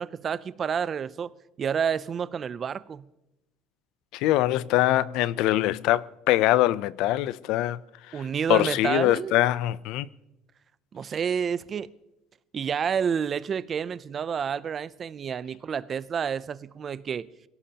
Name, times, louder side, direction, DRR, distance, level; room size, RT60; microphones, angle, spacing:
voice 1, 0.0-1.3 1.6-3.0 8.1-9.5 10.9-11.9 12.5-17.3, right 7 dB, 25° right, 0.4 m, -29 dB
voice 2, 4.1-7.8 8.1-10.1, left 15 dB, 60° left, 0.4 m, -23 dB
23.0 x 17.0 x 2.8 m
cardioid pair, 175°, 0 cm